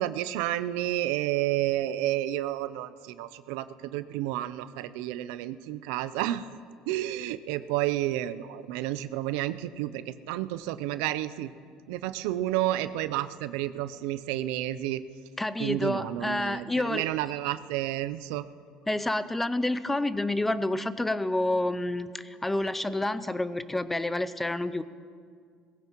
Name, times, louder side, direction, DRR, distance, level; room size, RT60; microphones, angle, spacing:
voice 1, 0.0-6.5 6.9-11.5 11.9-15.0 15.6-18.4, right 14 dB, 85° right, 14 dB, 0.5 m, -30 dB
voice 2, 15.4-17.1 18.9-24.8, left 1 dB, 10° left, 14 dB, 0.5 m, -29 dB
19.5 x 16.0 x 3.0 m, 2.1 s
cardioid pair, 120°, 2 cm